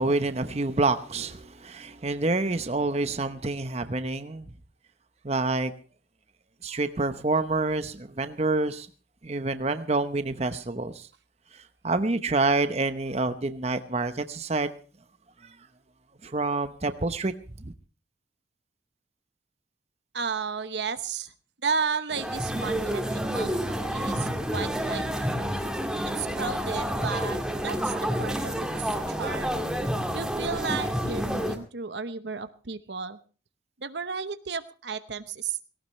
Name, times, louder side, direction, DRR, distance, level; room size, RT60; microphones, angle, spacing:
voice 1, 0.0-4.5 5.2-5.7 6.6-8.9 9.2-11.1 11.5-14.7 15.4-15.6 16.2-17.3 17.6-17.7, right 3 dB, 35° right, 10 dB, 0.9 m, -27 dB
voice 2, 20.1-21.3 21.6-23.5 23.9-25.3 26.2-29.6 30.1-33.2 33.8-35.6, right 5 dB, 70° right, 12 dB, 0.9 m, -33 dB
sound 1, 22.1-31.6, equal, 5° right, 2.0 m, -29 dB
18.0 x 17.5 x 3.2 m, 0.36 s
head